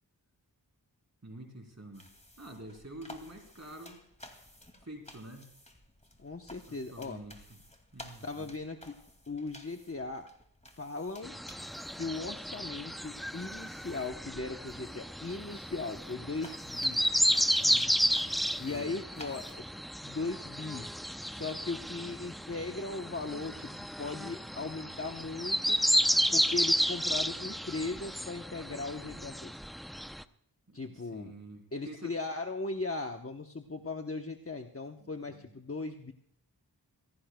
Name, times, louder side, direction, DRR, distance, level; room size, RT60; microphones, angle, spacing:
voice 1, 1.2-2.1 2.4-4.0 4.8-5.5 6.6-7.6 7.9-8.6 17.6-18.0 18.7-18.9 30.7-32.2 35.0-35.6, right 1 dB, 40° right, 2 dB, 3.7 m, -48 dB
sound 1, 1.9-19.9, left 1 dB, 15° left, 2.4 m, -55 dB
voice 2, 6.2-7.2 8.2-9.0 9.3-10.3 10.8-11.3 12.0-17.0 18.6-19.7 20.0-20.9 21.2-25.8 26.3-29.5 30.7-31.3 31.7-36.1, left 3 dB, 35° left, 5 dB, 1.0 m, -38 dB
sound 2, 11.2-30.2, equal, ahead, 0.6 m, -32 dB
25.0 x 17.0 x 2.3 m, 0.70 s
wide cardioid pair, 45°, 40 cm